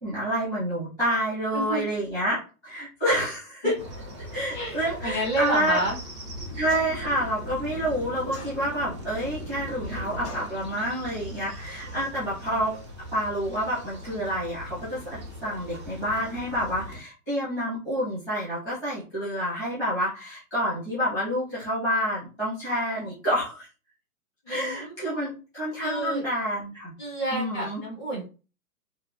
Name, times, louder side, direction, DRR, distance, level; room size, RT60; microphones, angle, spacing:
voice 1, 0.0-3.8 4.3-5.8 6.5-12.7 13.1-23.7 24.5-26.9 27.3-27.8, equal, 5° left, -12 dB, 0.8 m, -28 dB
voice 2, 1.5-1.8 3.6-3.7 4.5-5.9 24.4-25.0 25.8-26.2 27.0-28.2, right 1 dB, 35° left, -2 dB, 1.0 m, -29 dB
sound 1, 3.8-17.0, equal, 25° right, 0.3 m, -39 dB
sound 2, 6.7-7.2 8.3-9.0 10.2-10.6, left 2 dB, 50° left, 1.5 m, -42 dB
3.0 x 2.5 x 2.3 m, 0.35 s
hypercardioid pair, 160°, 44 cm